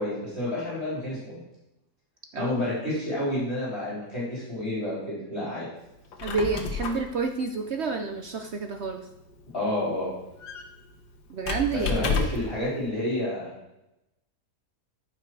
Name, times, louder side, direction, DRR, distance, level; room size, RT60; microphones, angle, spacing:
voice 1, 0.0-1.4 2.4-5.7 9.5-10.1 11.7-13.5, left 1 dB, 40° left, -8 dB, 4.3 m, -29 dB
Squeak, 6.0-12.6, left 4 dB, 75° left, 1.7 m, -33 dB
voice 2, 6.2-9.1 11.3-12.1, right 4 dB, 60° right, 6 dB, 0.7 m, -29 dB
14.0 x 5.9 x 4.6 m, 0.91 s
omnidirectional pair, 1.8 m